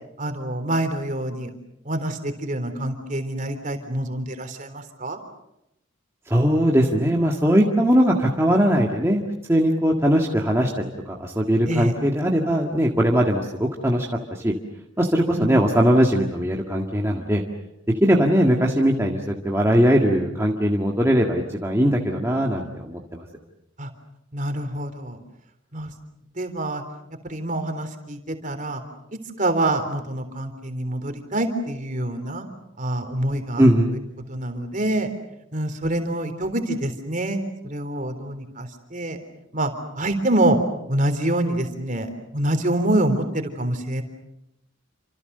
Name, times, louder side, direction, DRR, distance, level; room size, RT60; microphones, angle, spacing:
voice 1, 0.2-1.5 1.9-5.2 11.7-11.9 15.3-15.5 23.8-23.9 24.3-25.2 25.7-25.9 26.4-26.8 27.2-28.8 29.4-32.5 32.8-33.6 34.3-35.1 35.5-39.2 39.5-40.6 40.9-44.0, right 1 dB, 35° right, 7 dB, 3.6 m, -26 dB
voice 2, 6.3-9.2 9.5-14.5 15.0-17.4 18.0-23.3 33.6-33.9, equal, 10° right, -1 dB, 1.9 m, -20 dB
29.0 x 27.0 x 6.8 m, 0.84 s
head